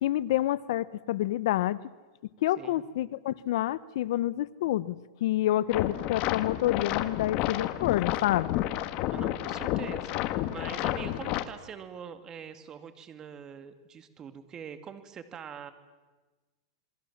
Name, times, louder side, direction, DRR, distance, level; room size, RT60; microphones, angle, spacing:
voice 1, 0.0-1.8 2.4-8.6, left 14 dB, 70° left, 18 dB, 0.9 m, -28 dB
sound 1, 5.7-11.4, left 14 dB, 45° left, 1.4 m, -31 dB
voice 2, 9.1-15.7, right 7 dB, 25° right, 10 dB, 2.2 m, -44 dB
27.5 x 22.5 x 7.3 m, 1.2 s
supercardioid pair, 145°, 3 cm